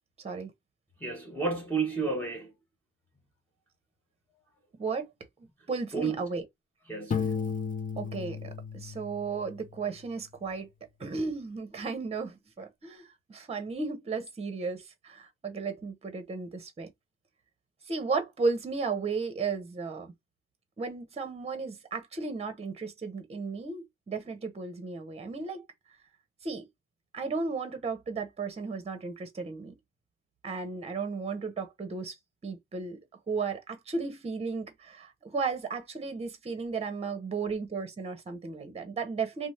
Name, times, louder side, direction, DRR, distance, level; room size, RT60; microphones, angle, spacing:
voice 1, 0.2-0.5 4.8-5.1 5.7-6.4 8.0-10.7 11.0-16.9 17.9-20.1 20.8-25.6 26.4-26.6 27.1-29.7 30.4-32.2 32.4-33.0 33.3-39.5, right 4 dB, 20° right, 0.8 m, -34 dB
voice 2, 1.0-2.5 5.9-6.1 6.9-7.4, right 4 dB, 5° left, 0.8 m, -31 dB
Piano, 7.1-9.9, left 6 dB, 30° left, 0.6 m, -34 dB
2.6 x 2.0 x 3.2 m
cardioid pair, 90°, 30 cm